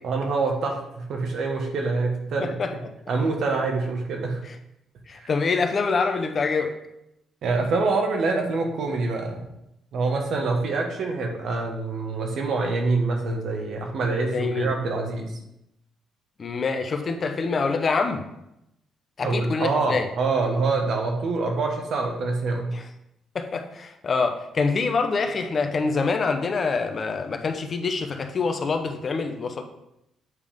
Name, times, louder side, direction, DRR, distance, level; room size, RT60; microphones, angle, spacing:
voice 1, 0.0-2.6 3.1-4.4 5.2-5.3 7.4-9.5 9.9-15.3 19.2-22.7, right 3 dB, 65° right, 2 dB, 1.5 m, -25 dB
voice 2, 2.4-2.7 4.5-4.6 5.1-6.7 14.3-14.7 16.4-18.2 19.2-20.1 22.7-22.8 23.3-29.6, left 4 dB, 45° left, 6 dB, 0.9 m, -25 dB
8.3 x 3.6 x 5.1 m, 0.84 s
cardioid pair, 90°, 0 cm